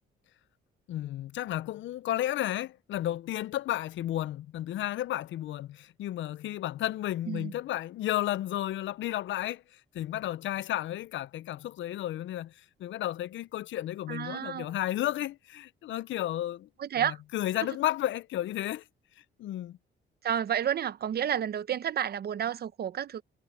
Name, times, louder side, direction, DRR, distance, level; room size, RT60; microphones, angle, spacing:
voice 1, 0.9-9.6 9.9-12.5 12.8-16.7 17.0-18.8 19.4-19.8, left 13 dB, 70° left, 0.6 m, -32 dB
voice 2, 14.1-14.7 16.8-17.2 20.2-23.2, right 9 dB, 55° right, 0.8 m, -30 dB
cardioid pair, 90°, 20 cm